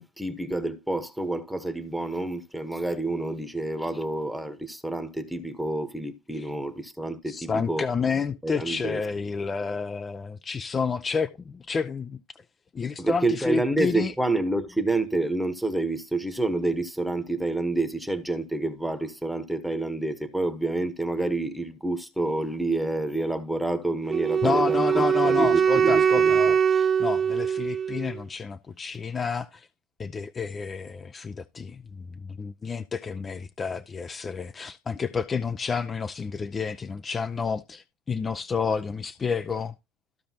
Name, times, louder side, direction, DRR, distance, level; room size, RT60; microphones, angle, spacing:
voice 1, 0.0-7.8 8.4-9.0 13.0-26.5, right 2 dB, ahead, 1.1 m, -28 dB
voice 2, 7.3-12.2 12.7-14.1 24.4-29.7 30.0-39.7, left 5 dB, 25° left, 0.5 m, -30 dB
Wind instrument woodwind instrument, 24.1-28.2, right 7 dB, 25° right, 0.7 m, -22 dB
14.5 x 5.1 x 2.9 m
supercardioid pair, 120°, 0 cm